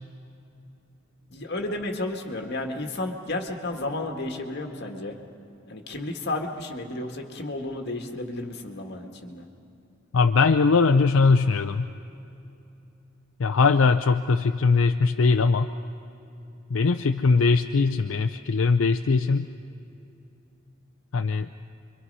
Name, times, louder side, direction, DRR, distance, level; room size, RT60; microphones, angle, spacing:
voice 1, 1.3-5.2 5.7-9.5, left 2 dB, 55° left, 3 dB, 1.9 m, -32 dB
voice 2, 10.1-11.9 13.4-15.7 16.7-19.5 21.1-21.5, left 4 dB, 70° left, 8 dB, 0.5 m, -21 dB
28.5 x 23.5 x 5.5 m, 2.8 s
head